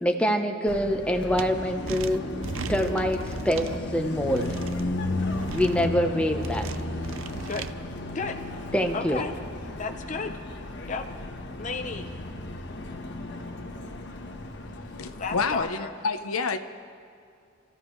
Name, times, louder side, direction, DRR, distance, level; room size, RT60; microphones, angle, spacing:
voice 1, 0.0-2.2 2.7-4.6 5.5-6.7 8.7-9.2, equal, 5° left, 3 dB, 0.9 m, -25 dB
Car passing by, 0.7-15.6, left 2 dB, 55° left, 1.2 m, -34 dB
sound 1, 1.4-1.5 1.9-3.8 4.3-4.8 5.3-5.9 6.4-7.7, right 5 dB, 70° right, 0.6 m, -37 dB
voice 2, 8.9-9.3 9.8-10.4 10.9-11.0 11.6-12.1 15.2-15.9, left 4 dB, 35° left, 4 dB, 0.6 m, -33 dB
voice 3, 14.9-16.6, left 4 dB, 85° left, 9 dB, 0.8 m, -28 dB
29.5 x 15.0 x 3.2 m, 2.4 s
head